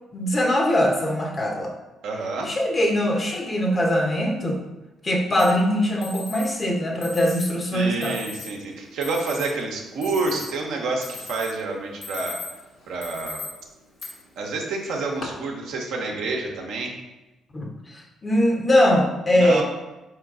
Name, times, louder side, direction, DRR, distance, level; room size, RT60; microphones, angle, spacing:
voice 1, 0.1-1.7 2.4-4.6 5.0-8.2 17.5-19.6, left 1 dB, 35° left, 1 dB, 1.0 m, -22 dB
voice 2, 2.0-2.5 7.7-12.4 12.9-13.4 14.4-16.9 19.3-19.6, right 3 dB, 70° right, 0 dB, 0.8 m, -28 dB
Alarm, 5.4-5.5 6.0-6.5 7.0-7.5 8.0-8.5 9.0-9.5 9.9-10.6 11.0-11.5 11.9-12.6 13.0-13.5 14.0-14.1 14.9-15.2, left 5 dB, 60° left, 1.3 m, -37 dB
4.6 x 3.0 x 3.7 m, 1.0 s
hypercardioid pair, 45°, 0 cm